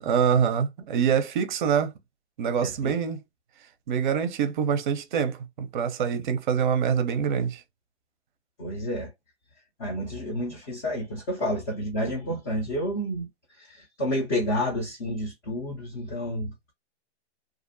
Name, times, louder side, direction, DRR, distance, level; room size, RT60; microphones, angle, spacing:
voice 1, 0.0-1.9 2.4-3.2 3.9-7.6, right 7 dB, 45° right, 0.6 m, -25 dB
voice 2, 2.6-2.9 8.6-9.1 9.8-13.3 13.6-16.7, equal, 20° left, 0.4 m, -30 dB
2.5 x 2.0 x 2.6 m
hypercardioid pair, 130°, 35 cm